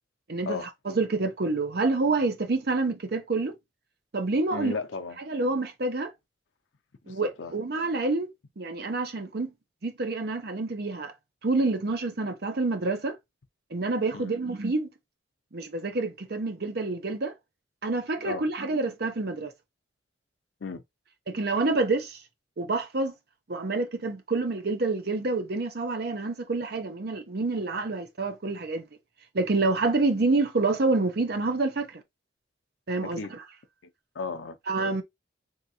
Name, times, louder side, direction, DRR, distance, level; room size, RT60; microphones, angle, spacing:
voice 1, 0.3-3.5 4.1-4.8 5.3-6.1 7.1-8.3 8.6-9.5 9.8-11.1 11.4-13.2 13.7-14.9 15.5-17.3 17.8-19.5 21.3-22.2 22.6-23.1 23.5-28.9 29.3-32.0 32.9-33.4 34.7-35.0, right 3 dB, 55° right, 0.7 m, -27 dB
voice 2, 4.5-5.2 7.1-7.5 14.1-14.4 18.2-18.4 20.6-20.8 33.0-33.3 34.2-34.6, left 4 dB, 85° left, 0.6 m, -34 dB
3.5 x 2.8 x 2.7 m
head